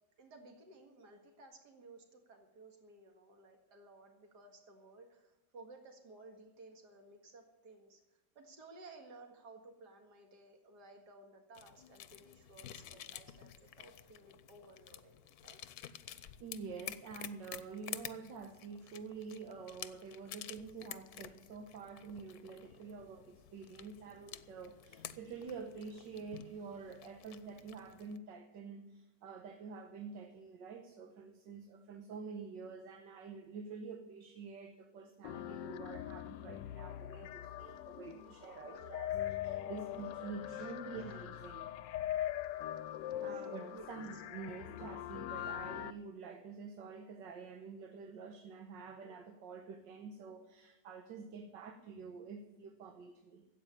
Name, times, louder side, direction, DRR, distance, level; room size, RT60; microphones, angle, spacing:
voice 1, 0.2-15.1 15.4-15.6 22.7-22.8 38.7-38.9 39.2-39.7 40.2-41.2 41.5-42.9 43.3-44.2, right 2 dB, 65° right, 4 dB, 2.4 m, -58 dB
sound 1, 11.6-28.2, left 10 dB, 70° left, 1.1 m, -51 dB
voice 2, 16.0-41.7 43.2-53.5, right 5 dB, 85° right, 6 dB, 1.7 m, -48 dB
sound 2, 35.2-45.9, left 12 dB, 85° left, 1.3 m, -42 dB
13.5 x 8.4 x 8.8 m, 1.0 s
omnidirectional pair, 1.9 m